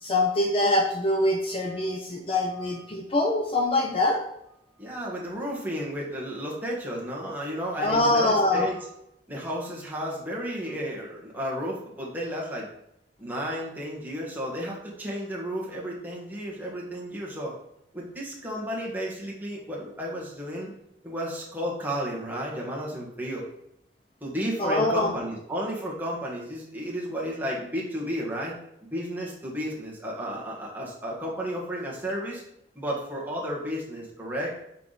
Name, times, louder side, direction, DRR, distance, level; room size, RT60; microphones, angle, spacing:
voice 1, 0.0-4.2 7.8-8.7 24.6-25.1, left 1 dB, 30° left, 2 dB, 0.7 m, -24 dB
voice 2, 4.8-8.8 9.3-12.7 13.2-17.5 17.9-20.7 21.0-23.4 24.2-28.6 28.9-32.4 32.7-34.5, equal, 10° right, -4 dB, 1.6 m, -32 dB
5.7 x 4.8 x 4.0 m, 0.80 s
head